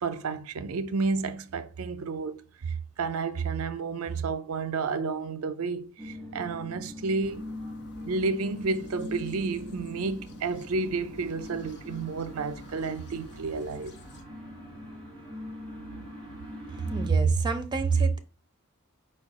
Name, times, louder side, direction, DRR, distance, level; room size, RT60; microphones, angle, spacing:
voice 1, 0.0-7.5 8.1-13.9, right 4 dB, 85° right, 0.5 m, -31 dB
sound 1, 6.0-17.1, left 1 dB, 5° left, 1.7 m, -42 dB
sound 2, 7.2-14.2, left 1 dB, 55° left, 0.7 m, -51 dB
voice 2, 16.7-18.2, right 5 dB, 20° right, 0.6 m, -25 dB
4.6 x 2.3 x 4.7 m
head